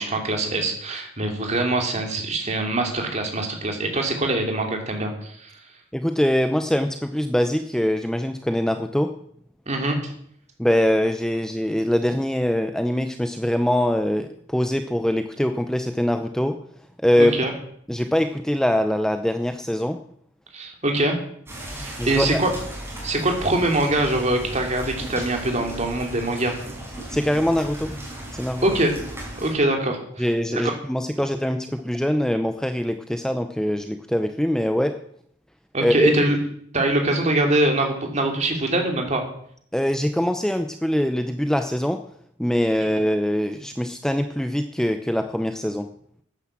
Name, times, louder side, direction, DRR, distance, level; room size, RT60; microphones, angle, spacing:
voice 1, 0.0-5.5 9.7-10.1 17.2-17.5 20.5-21.1 21.8-22.5 23.0-26.5 28.6-28.9 29.4-30.3 30.5-30.7 35.7-36.4 36.7-39.2, right 1 dB, 35° right, 3 dB, 2.9 m, -23 dB
voice 2, 5.9-9.1 10.6-16.6 17.0-17.3 17.9-20.0 22.0-22.4 27.1-27.9 28.3-28.6 30.2-35.0 35.8-36.1 39.7-42.0 42.4-45.9, equal, 5° left, 7 dB, 0.6 m, -23 dB
sound 1, 21.5-29.5, right 1 dB, 15° right, 4.8 m, -36 dB
12.0 x 9.7 x 7.5 m, 0.66 s
head